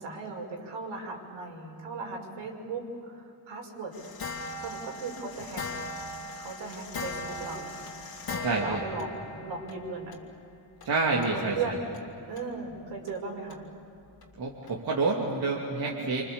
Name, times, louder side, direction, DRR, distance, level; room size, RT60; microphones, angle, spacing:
voice 1, 0.0-3.9 4.6-5.6 6.4-7.8 8.3-10.1 11.1-11.8 12.3-13.6 15.8-16.0, right 4 dB, 75° right, 0 dB, 6.1 m, -37 dB
sound 1, 3.9-9.7 10.1-10.2 10.8-10.9 11.2-11.3 11.9-12.0 12.4-12.5 13.1-13.2 13.5-13.6 14.2-14.3 14.7-14.8, left 2 dB, 50° left, 2.6 m, -38 dB
voice 2, 8.4-8.8 10.8-11.8 14.4-16.3, right 3 dB, 50° right, -2 dB, 2.9 m, -28 dB
28.0 x 26.0 x 7.2 m, 2.8 s
cardioid pair, 125°, 46 cm